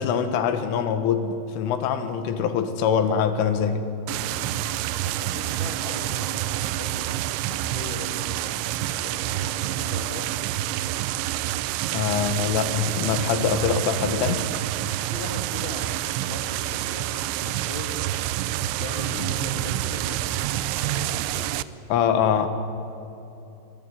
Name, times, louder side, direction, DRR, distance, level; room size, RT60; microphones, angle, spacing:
voice 1, 0.0-3.8 11.9-14.5 21.9-22.5, left 7 dB, 90° left, 9 dB, 4.1 m, -24 dB
sound 1, 4.1-21.6, right 14 dB, 80° right, 2.9 m, -28 dB
voice 2, 4.2-4.7 5.0-7.1 7.5-10.3 15.1-17.1 17.4-18.0 18.8-21.5, left 2 dB, 20° left, 3 dB, 1.5 m, -39 dB
23.0 x 22.0 x 9.3 m, 3.0 s
omnidirectional pair, 5.5 m